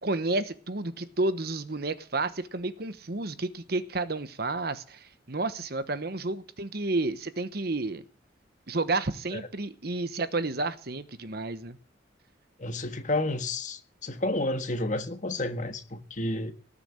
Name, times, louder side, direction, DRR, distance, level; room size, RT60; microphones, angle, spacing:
voice 1, 0.0-8.0 8.7-11.8, right 2 dB, 55° right, 1.1 m, -31 dB
voice 2, 12.6-16.5, left 2 dB, 40° left, 1.6 m, -31 dB
18.5 x 7.0 x 8.9 m
head